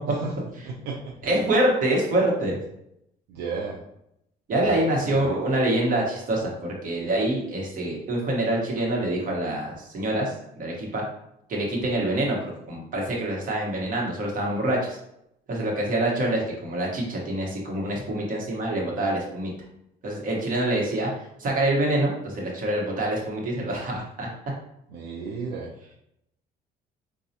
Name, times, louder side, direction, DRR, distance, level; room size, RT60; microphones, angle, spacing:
voice 1, 0.6-1.1 3.3-3.8 4.6-5.3 24.9-25.7, right 4 dB, 80° right, -2 dB, 0.5 m, -33 dB
voice 2, 1.2-2.6 4.5-6.5 6.8-11.0 11.5-15.0 15.5-19.5 20.0-21.1 21.4-24.3, right 1 dB, 55° right, -2 dB, 1.1 m, -25 dB
4.0 x 2.3 x 2.8 m, 0.79 s
cardioid pair, 110°, 17 cm